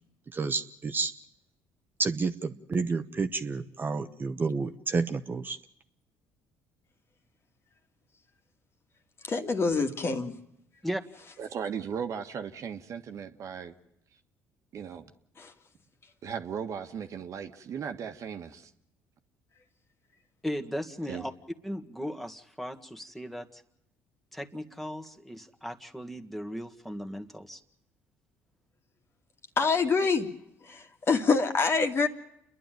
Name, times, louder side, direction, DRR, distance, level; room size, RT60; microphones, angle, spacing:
voice 1, 0.3-1.1 2.0-5.6, right 4 dB, 30° right, 7 dB, 1.0 m, -30 dB
voice 2, 9.2-10.3 15.4-15.5 29.6-30.3 30.6-32.1, left 4 dB, 40° left, 5 dB, 2.2 m, -26 dB
voice 3, 11.4-13.7 14.7-15.1 16.2-18.7 21.1-21.3, right 7 dB, 55° right, 7 dB, 1.6 m, -37 dB
voice 4, 20.4-21.3 21.6-23.6 24.3-27.6, equal, ahead, 6 dB, 1.8 m, -37 dB
29.0 x 11.0 x 9.3 m, 0.80 s
supercardioid pair, 70°, 6 cm